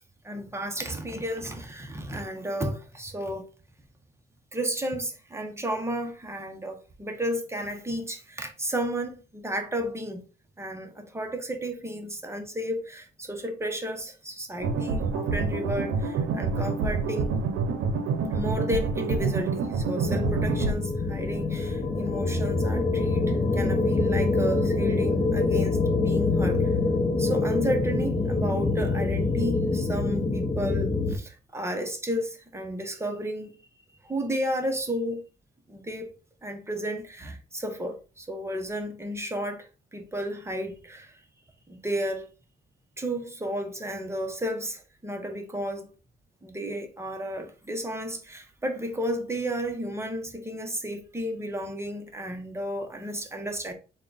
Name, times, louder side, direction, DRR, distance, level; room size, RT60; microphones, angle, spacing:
voice 1, 0.2-3.5 4.5-10.2 10.6-17.3 18.3-26.7 27.2-33.5 34.0-35.2 35.7-36.1 36.4-41.2 41.7-42.3 43.0-45.9 46.4-53.7, equal, 15° right, 0.8 m, -33 dB
sound 1, 14.6-20.7, right 4 dB, 85° right, 0.6 m, -27 dB
sound 2, 20.0-31.2, left 3 dB, 25° left, 0.7 m, -25 dB
3.7 x 2.3 x 3.9 m
cardioid pair, 90°, 20 cm